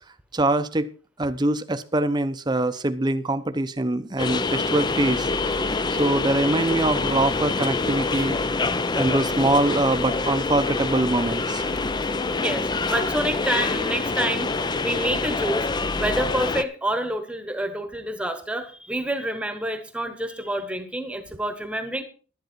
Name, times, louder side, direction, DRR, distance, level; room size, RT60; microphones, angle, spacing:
voice 1, 0.3-0.9 1.2-5.3 5.9-8.4 8.9-11.6, right 2 dB, 20° right, 0.7 m, -23 dB
sound 1, 4.2-16.6, left 3 dB, 20° left, 0.5 m, -26 dB
voice 2, 12.4-15.7 15.9-22.0, right 1 dB, 5° right, 1.1 m, -28 dB
11.5 x 10.5 x 4.5 m
head